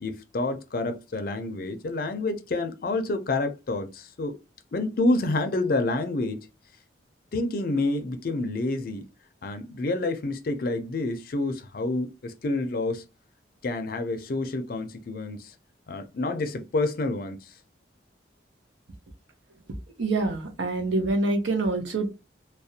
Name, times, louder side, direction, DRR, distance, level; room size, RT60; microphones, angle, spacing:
voice 1, 0.0-4.4 4.7-6.5 7.3-9.1 9.4-13.0 13.6-15.5 15.9-17.4, left 2 dB, 50° left, 0.4 m, -28 dB
voice 2, 20.0-22.1, right 2 dB, 75° right, 0.7 m, -26 dB
2.4 x 2.0 x 2.7 m
head